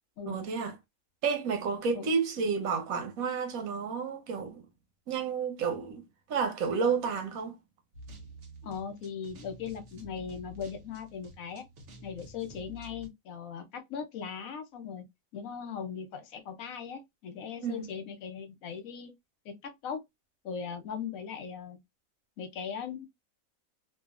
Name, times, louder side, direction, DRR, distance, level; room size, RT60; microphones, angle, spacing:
voice 1, 0.3-0.8 1.2-4.6 5.1-6.0 6.3-7.6 17.6-17.9, right 5 dB, 85° right, 1.2 m, -31 dB
sound 1, 7.9-13.1, equal, 60° right, 1.1 m, -49 dB
voice 2, 8.6-11.6 12.0-15.0 15.3-19.1 19.4-20.0 20.4-21.8 22.4-23.1, left 7 dB, 80° left, 1.1 m, -39 dB
2.8 x 2.4 x 2.4 m
omnidirectional pair, 1.4 m